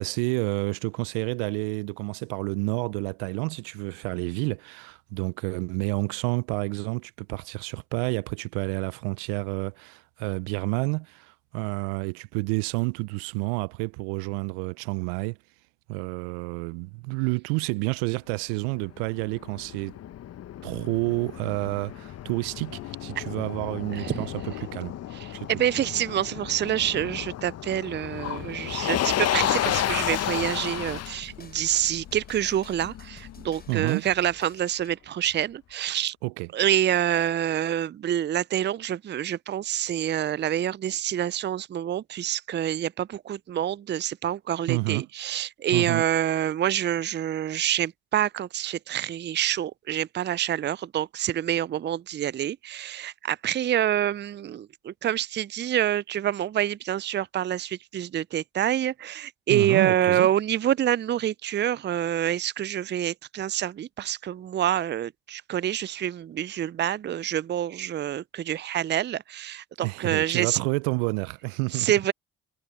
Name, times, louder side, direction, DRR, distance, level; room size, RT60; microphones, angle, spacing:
voice 1, 0.0-15.4 15.9-20.0 20.6-25.0 25.3-25.5 33.7-34.0 36.2-36.5 44.7-45.0 45.7-46.0 59.5-60.3 69.8-71.9, right 30 dB, 80° right, 0.6 m, -29 dB
Motor vehicle (road), 18.6-33.7, left 12 dB, 50° left, 0.9 m, -32 dB
sound 1, 22.7-30.8 31.4-31.5 31.8-32.0, left 24 dB, 75° left, 2.8 m, -50 dB
voice 2, 23.9-24.2 25.1-36.1 36.5-70.6 71.7-72.1, right 11 dB, 35° right, 0.5 m, -27 dB
sound 2, 29.3-34.9, left 4 dB, 30° left, 6.2 m, -51 dB
hypercardioid pair, 45°, 31 cm